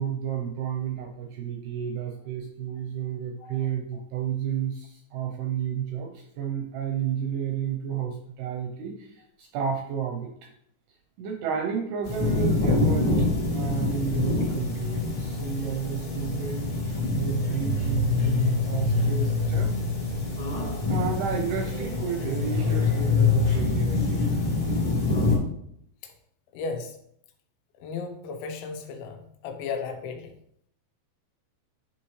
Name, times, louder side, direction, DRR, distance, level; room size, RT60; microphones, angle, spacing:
voice 1, 0.0-10.3 11.2-13.3 13.5-19.8 20.9-24.3, right 8 dB, 80° right, 3 dB, 2.3 m, -32 dB
voice 2, 3.4-4.0 26.0-26.1 26.5-27.0 27.8-30.3, left 4 dB, 85° left, 5 dB, 3.2 m, -35 dB
sound 1, 12.0-25.4, left 3 dB, 45° left, 1.4 m, -25 dB
11.0 x 4.3 x 3.1 m, 0.71 s
omnidirectional pair, 5.2 m